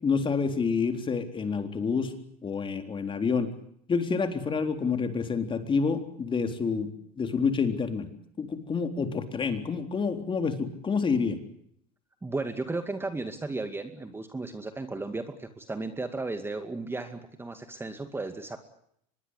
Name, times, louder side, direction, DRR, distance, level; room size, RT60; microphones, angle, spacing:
voice 1, 0.0-2.1 2.4-3.5 3.9-6.9 7.2-8.1 8.4-11.4, left 5 dB, 25° left, 7 dB, 3.9 m, -28 dB
voice 2, 12.2-18.6, right 3 dB, 10° right, 8 dB, 2.3 m, -34 dB
24.5 x 21.5 x 8.3 m, 0.69 s
supercardioid pair, 110°, 20 cm